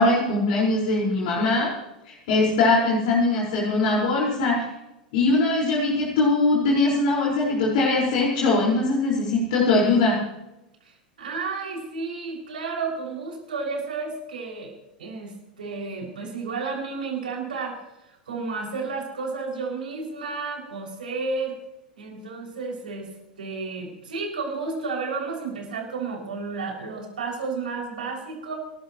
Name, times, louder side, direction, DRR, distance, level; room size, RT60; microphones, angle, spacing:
voice 1, 0.0-1.7 2.0-4.6 5.1-10.2, left 2 dB, 60° left, -4 dB, 5.1 m, -21 dB
voice 2, 10.8-14.7 15.0-17.8 18.3-21.6 22.0-23.1 23.4-28.6, right 4 dB, 75° right, -1 dB, 6.3 m, -32 dB
28.5 x 12.5 x 3.1 m, 0.94 s
figure-of-eight pair, 90°, 5 cm